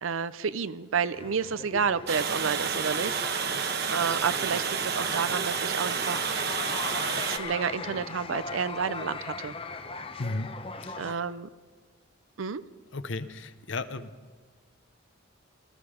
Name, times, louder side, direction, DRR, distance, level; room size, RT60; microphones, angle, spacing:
voice 1, 0.0-3.2 3.9-6.4 7.3-9.5 11.0-11.5 12.4-12.6, right 6 dB, 80° right, 15 dB, 0.6 m, -30 dB
sound 1, 1.1-11.1, left 4 dB, 25° left, 0.8 m, -39 dB
Water, 2.1-7.4, right 6 dB, 50° right, 1.2 m, -30 dB
voice 2, 10.2-10.5 10.9-11.2 12.9-14.1, left 3 dB, 65° left, 12 dB, 0.9 m, -34 dB
20.5 x 13.5 x 5.0 m, 1.5 s
head